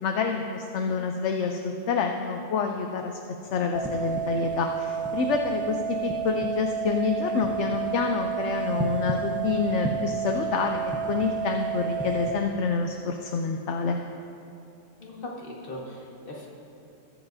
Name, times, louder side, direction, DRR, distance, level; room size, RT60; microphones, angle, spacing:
voice 1, 0.0-3.2 3.5-14.0, left 5 dB, 70° left, 4 dB, 0.9 m, -27 dB
Tinnitus sound, 3.8-12.3, right 6 dB, 10° right, 0.5 m, -30 dB
voice 2, 15.0-16.5, left 1 dB, 45° left, -3 dB, 1.8 m, -39 dB
20.5 x 7.9 x 2.7 m, 2.7 s
omnidirectional pair, 1.3 m